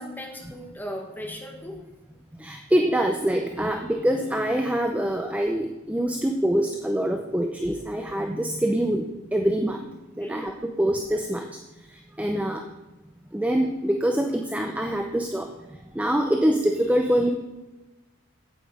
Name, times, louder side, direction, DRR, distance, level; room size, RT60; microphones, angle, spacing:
voice 1, 0.0-1.8 10.2-10.5, equal, 10° left, 1 dB, 1.3 m, -37 dB
voice 2, 2.4-9.9 10.2-11.5 11.9-12.7 13.3-15.5 15.9-17.3, right 1 dB, 5° right, 4 dB, 0.5 m, -25 dB
8.7 x 8.2 x 5.0 m, 1.1 s
head